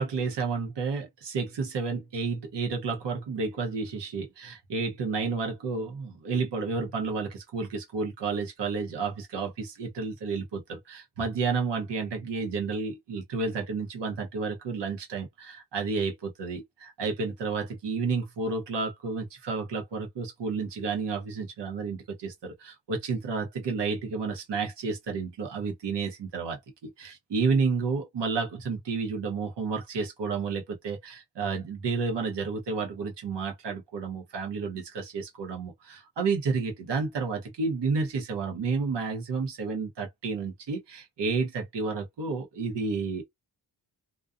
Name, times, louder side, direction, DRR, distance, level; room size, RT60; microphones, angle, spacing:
voice 1, 0.0-43.2, right 4 dB, 70° right, 0.9 m, -31 dB
2.5 x 2.3 x 2.4 m
wide cardioid pair, 120°, 44 cm